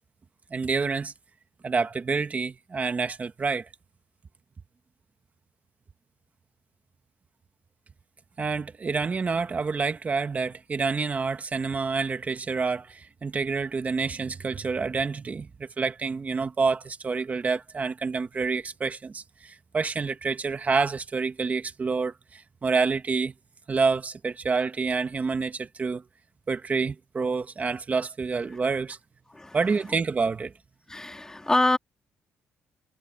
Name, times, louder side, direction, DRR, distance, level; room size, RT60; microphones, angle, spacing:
voice 1, 0.5-1.1 1.6-3.7 8.4-23.3 23.7-26.0 26.5-29.0 29.5-30.5, right 4 dB, 30° right, 1.5 m, -28 dB
voice 2, 30.9-31.8, left 2 dB, 10° left, 2.3 m, -25 dB
cardioid pair, 110°, 5 cm